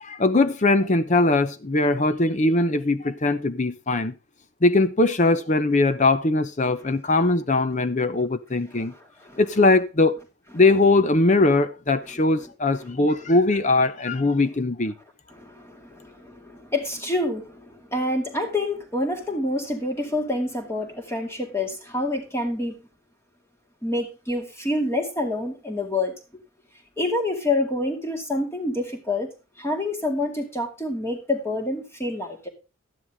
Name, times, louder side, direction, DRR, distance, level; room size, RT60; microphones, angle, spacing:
voice 1, 0.0-4.1 4.6-8.9 9.4-10.2 10.5-14.9, left 2 dB, 35° left, 0.8 m, -21 dB
voice 2, 8.7-9.4 12.1-12.2 15.3-22.8 23.8-26.1 27.0-29.3 29.6-32.5, left 2 dB, 15° left, 2.3 m, -27 dB
12.5 x 10.0 x 3.5 m
head